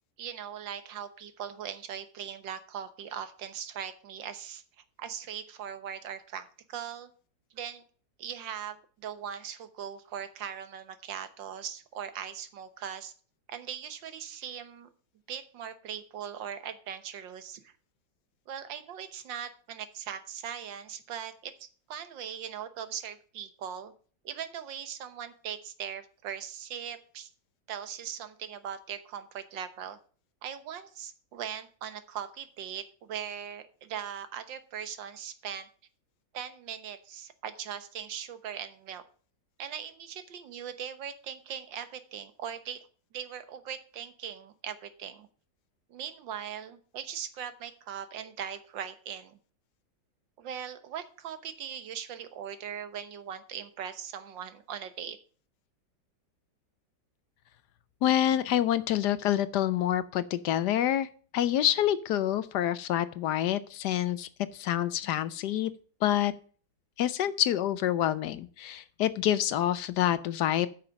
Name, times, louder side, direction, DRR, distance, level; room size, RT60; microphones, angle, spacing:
voice 1, 0.2-4.6 5.0-7.1 7.5-7.8 8.2-13.1 13.5-14.9 15.3-17.7 18.5-23.9 24.3-27.3 27.7-30.0 30.4-35.7 36.3-39.0 39.6-42.8 43.1-45.3 45.9-49.4 50.4-55.2, right 8 dB, 85° right, 11 dB, 1.7 m, -40 dB
voice 2, 58.0-61.1 61.3-65.7 66.0-66.3 67.0-70.7, left 11 dB, 70° left, 15 dB, 1.1 m, -27 dB
9.0 x 6.5 x 5.7 m, 0.41 s
omnidirectional pair, 2.0 m